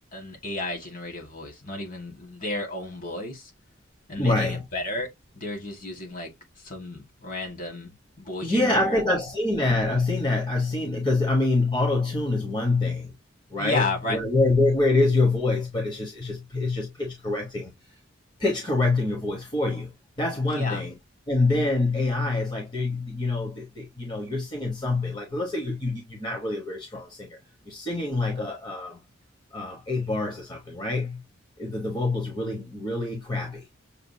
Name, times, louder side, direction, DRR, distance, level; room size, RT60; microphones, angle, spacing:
voice 1, 0.1-3.5 4.1-5.1 5.3-9.0 13.6-14.2 20.5-20.8, left 2 dB, 45° left, 1.6 m, -33 dB
voice 2, 4.2-4.6 8.4-13.1 13.5-17.7 18.4-19.9 20.2-20.9 21.3-27.4 27.7-29.0 29.5-31.2 31.6-33.6, left 2 dB, 20° left, 1.0 m, -26 dB
6.7 x 2.4 x 2.6 m
head